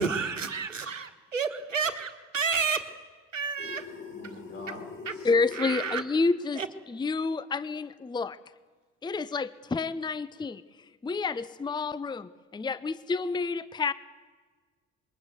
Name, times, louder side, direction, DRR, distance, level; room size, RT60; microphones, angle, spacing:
voice 1, 0.0-2.9 3.3-3.9 4.2-4.3 5.1-5.2 5.5-6.0 6.6-6.7, right 5 dB, 85° right, 9 dB, 1.4 m, -30 dB
sound 1, 3.6-6.0, left 4 dB, 30° left, 4.7 m, -42 dB
voice 2, 4.1-4.9 5.1-5.3, left 2 dB, 75° left, 2 dB, 5.3 m, -44 dB
voice 3, 5.2-6.6 6.9-8.4 9.0-10.6 11.0-13.9, left 4 dB, 10° left, 17 dB, 0.7 m, -29 dB
25.5 x 22.0 x 8.0 m, 1.5 s
figure-of-eight pair, 50°, 38 cm